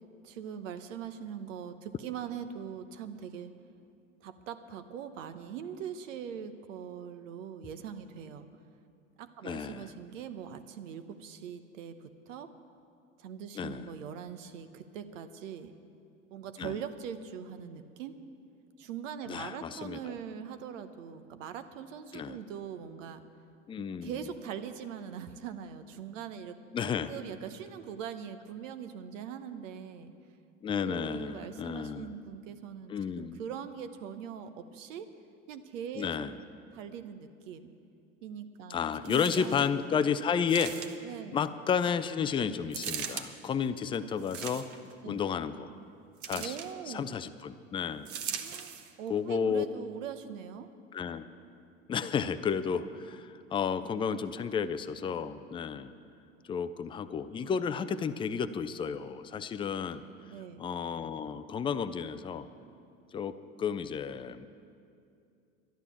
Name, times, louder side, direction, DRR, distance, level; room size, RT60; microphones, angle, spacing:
voice 1, 0.2-3.5 4.2-8.6 9.2-12.5 13.2-15.7 16.3-18.2 18.8-23.2 24.0-30.1 30.8-35.1 35.5-36.1 36.7-37.7 38.2-39.8 41.0-41.4 45.0-45.2 46.3-47.2 48.4-50.7 60.3-60.6, right 8 dB, 65° right, 10 dB, 1.0 m, -42 dB
voice 2, 9.4-9.9 13.6-13.9 16.6-16.8 19.3-20.0 22.1-22.4 23.7-24.3 26.7-27.1 30.6-32.1 32.9-33.4 35.9-36.4 38.7-40.7 41.3-44.6 45.1-45.7 46.2-46.6 46.9-48.1 49.1-49.7 50.9-51.3 51.9-55.9 56.5-60.0 60.6-62.5 63.1-64.5, left 7 dB, 15° left, 11 dB, 0.4 m, -32 dB
sound 1, 39.0-39.7 40.5-41.2 42.7-43.3 44.2-44.9 46.2-46.7 48.0-48.9 49.6-49.7, right 8 dB, 45° right, 1.1 m, -39 dB
11.5 x 11.5 x 7.1 m, 2.5 s
hypercardioid pair, 80°, 41 cm